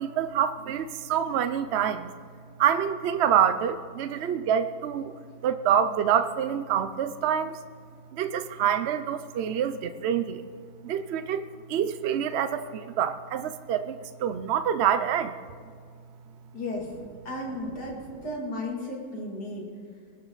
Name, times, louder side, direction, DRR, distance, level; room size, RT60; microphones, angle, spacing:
voice 1, 0.0-2.1 2.6-5.1 5.4-7.6 8.1-10.4 10.8-15.4, right 9 dB, 75° right, 11 dB, 0.6 m, -26 dB
voice 2, 16.5-16.9 17.2-18.0 18.2-19.7, left 1 dB, 85° left, -2 dB, 3.1 m, -34 dB
21.0 x 12.5 x 3.9 m, 2.1 s
omnidirectional pair, 1.7 m